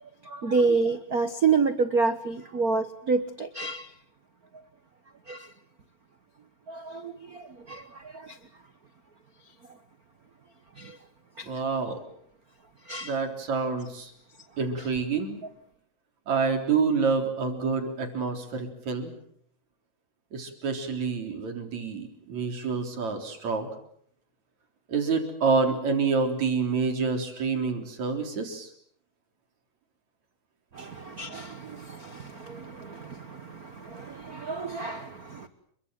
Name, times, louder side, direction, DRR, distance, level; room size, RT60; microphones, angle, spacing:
voice 1, 0.2-3.9 5.3-5.5 6.7-8.4 10.8-11.0 11.4-11.5 12.9-13.2 30.7-35.5, right 4 dB, 80° right, 11 dB, 0.8 m, -29 dB
voice 2, 11.4-12.0 13.0-14.1 14.6-15.4 16.3-19.1 20.3-23.7 24.9-28.7 30.8-30.9, right 5 dB, 60° right, 6 dB, 5.0 m, -27 dB
29.5 x 23.5 x 7.6 m, 0.66 s
omnidirectional pair, 3.8 m